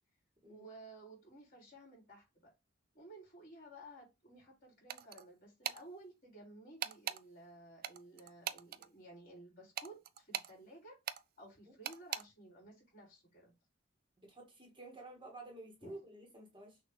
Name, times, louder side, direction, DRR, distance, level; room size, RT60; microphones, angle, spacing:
voice 1, 0.5-2.5 2.9-11.0 11.4-13.5 15.8-16.0, right 1 dB, 45° left, 3.2 m, -55 dB
sound 1, 4.9-5.2 5.6-5.8 6.8-7.2 7.8-8.9 9.8-10.5 11.1-11.2 11.8-12.2, right 10 dB, 50° right, 0.4 m, -40 dB
voice 2, 14.2-16.8, right 2 dB, 25° right, 1.4 m, -51 dB
6.1 x 2.7 x 3.1 m
head